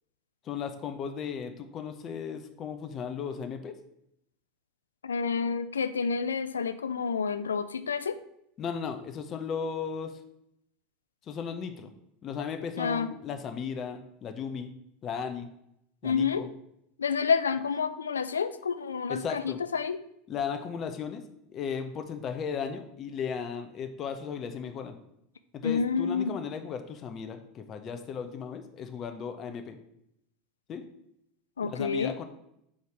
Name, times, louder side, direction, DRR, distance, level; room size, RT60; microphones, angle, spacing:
voice 1, 0.4-3.7 8.6-10.1 11.3-11.9 12.2-14.7 15.0-15.5 16.0-16.5 19.1-19.6 20.3-21.2 21.5-25.0 25.5-29.8 30.7-30.8 31.6-32.2, left 6 dB, 40° left, 7 dB, 0.8 m, -36 dB
voice 2, 5.0-8.2 12.8-13.1 16.0-16.4 17.0-20.0 25.6-26.3 31.6-32.1, left 6 dB, 90° left, 12 dB, 0.4 m, -29 dB
5.0 x 4.0 x 5.8 m, 0.76 s
hypercardioid pair, 85°, 0 cm